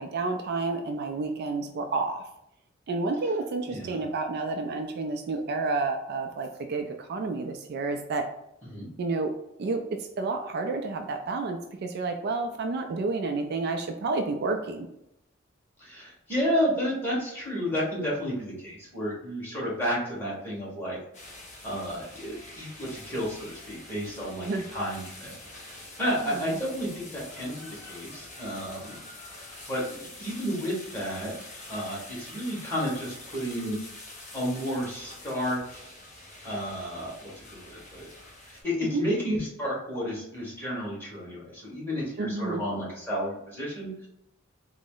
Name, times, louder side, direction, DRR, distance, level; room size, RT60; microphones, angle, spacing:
voice 1, 0.0-2.3 2.9-8.3 9.0-9.3 9.6-9.8 10.2-14.9 24.5-24.6 26.2-26.6 38.9-39.0 42.2-42.6, right 3 dB, 55° right, 5 dB, 0.3 m, -30 dB
voice 2, 3.7-4.0 8.6-8.9 15.8-21.0 21.6-25.3 25.6-29.0 29.7-31.3 31.7-33.8 34.3-35.8 36.4-38.1 38.5-44.1, equal, 10° left, -6 dB, 1.4 m, -32 dB
sound 1, 21.1-38.6, left 2 dB, 40° left, 0.9 m, -46 dB
3.9 x 2.0 x 3.7 m, 0.81 s
head